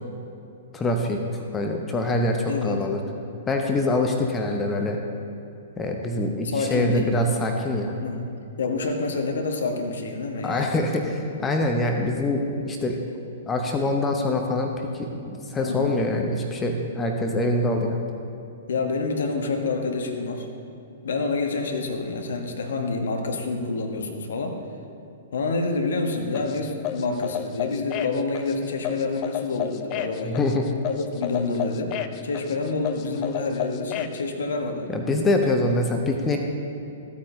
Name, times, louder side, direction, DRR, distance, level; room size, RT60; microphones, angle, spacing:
voice 1, 0.7-1.2 1.5-3.0 3.5-5.0 5.8-7.9 10.4-13.0 13.5-18.0 30.2-30.7 34.9-36.4, left 2 dB, 15° left, 3 dB, 0.8 m, -24 dB
voice 2, 6.4-7.1 8.0-8.2 8.6-10.7 15.6-16.0 18.7-20.5 21.0-24.6 25.3-30.4 30.9-31.9 32.2-34.9, left 3 dB, 60° left, 4 dB, 1.1 m, -27 dB
sound 1, 26.3-34.2, left 12 dB, 30° left, 0.5 m, -32 dB
14.0 x 8.5 x 3.2 m, 2.7 s
figure-of-eight pair, 110°, 0 cm